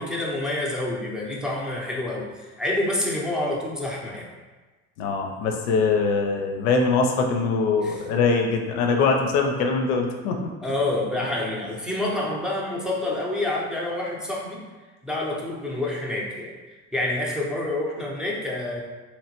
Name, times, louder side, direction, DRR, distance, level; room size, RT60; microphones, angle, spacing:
voice 1, 0.0-4.3 7.8-8.0 10.6-14.6 15.0-18.8, left 1 dB, ahead, -4 dB, 0.6 m, -28 dB
voice 2, 5.0-10.5, left 4 dB, 85° left, 2 dB, 0.5 m, -22 dB
3.0 x 2.1 x 2.9 m, 1.3 s
supercardioid pair, 65°, 41 cm